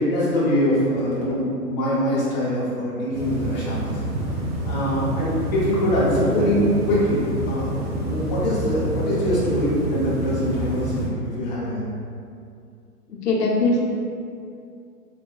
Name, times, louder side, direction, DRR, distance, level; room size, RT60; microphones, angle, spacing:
voice 1, 0.0-4.0 4.6-6.6 6.9-11.8, equal, 25° left, -8 dB, 0.7 m, -24 dB
sound 1, 3.1-11.1, right 1 dB, 40° right, 0.7 m, -28 dB
voice 2, 13.1-13.8, left 2 dB, 70° left, -2 dB, 0.8 m, -21 dB
3.9 x 2.2 x 2.2 m, 2.4 s
figure-of-eight pair, 125°, 49 cm